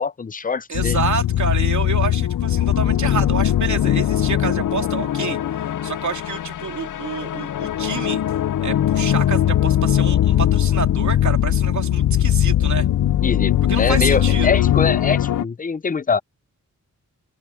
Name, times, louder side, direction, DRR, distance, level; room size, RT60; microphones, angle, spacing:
voice 1, 0.0-1.0 13.2-16.2, left 5 dB, 30° left, 0.5 m, -23 dB
sound 1, 0.7-15.4, left 11 dB, 85° left, 0.6 m, -20 dB
voice 2, 0.7-5.4 5.8-8.2 8.6-12.9 13.7-14.7, right 6 dB, 70° right, 3.1 m, -28 dB
open air
wide cardioid pair, 155°, 30 cm